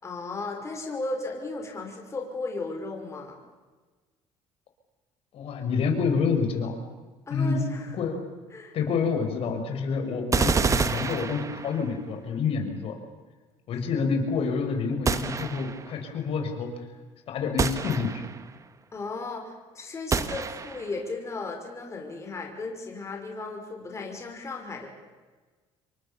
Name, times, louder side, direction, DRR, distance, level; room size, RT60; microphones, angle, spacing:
voice 1, 0.0-3.4 7.3-7.9 8.5-8.8 18.9-24.9, left 3 dB, 25° left, 2 dB, 5.7 m, -35 dB
voice 2, 5.3-6.8 7.3-7.7 7.9-8.2 8.7-12.9 13.7-16.7 17.3-18.2, left 5 dB, 60° left, 5 dB, 6.1 m, -28 dB
sound 1, 10.3-12.0 15.1-15.9 17.6-18.5 20.1-21.0, right 5 dB, 30° right, 1.5 m, -28 dB
28.0 x 24.0 x 7.1 m, 1.3 s
cardioid pair, 110°, 11 cm